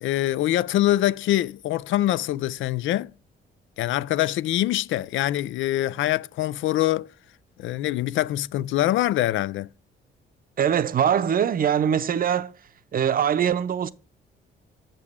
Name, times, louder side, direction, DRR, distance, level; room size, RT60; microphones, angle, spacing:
voice 1, 0.0-3.1 3.8-7.1 7.6-9.7, left 14 dB, 75° left, 0.4 m, -24 dB
voice 2, 10.6-12.5 12.9-13.9, right 8 dB, 45° right, 0.6 m, -22 dB
7.2 x 6.7 x 3.5 m
cardioid pair, 90°, 20 cm